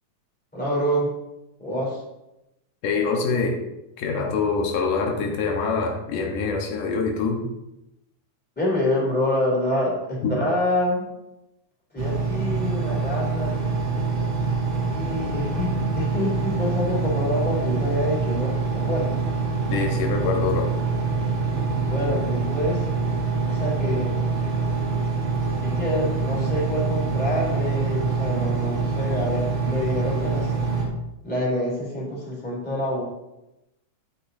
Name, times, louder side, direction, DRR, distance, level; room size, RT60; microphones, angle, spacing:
voice 1, 0.5-1.1 1.6-2.0 8.5-11.1 11.9-13.6 14.9-19.2 21.9-22.9 23.5-24.2 25.6-30.5 31.2-33.0, left 1 dB, 5° left, -6 dB, 3.2 m, -26 dB
voice 2, 2.8-3.6 4.0-7.4 10.2-10.3 19.7-20.7, left 4 dB, 85° left, 1 dB, 2.9 m, -25 dB
Engine, 12.0-30.9, right 4 dB, 40° right, 2.6 m, -25 dB
11.0 x 8.8 x 2.8 m, 0.92 s
omnidirectional pair, 3.6 m